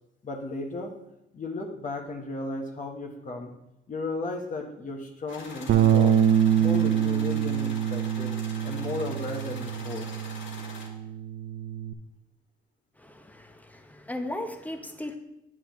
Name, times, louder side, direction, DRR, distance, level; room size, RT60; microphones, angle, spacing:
voice 1, 0.2-1.0 1.3-3.5 3.9-6.2 6.6-8.3 8.6-10.1, left 2 dB, 40° left, 2 dB, 1.2 m, -35 dB
sound 1, 5.3-10.9, left 3 dB, 70° left, 1.7 m, -44 dB
Bass guitar, 5.7-11.9, right 9 dB, 65° right, 0.5 m, -25 dB
voice 2, 13.0-15.2, left 1 dB, 10° left, 6 dB, 0.9 m, -37 dB
8.7 x 7.4 x 3.1 m, 0.87 s
cardioid pair, 90°, 20 cm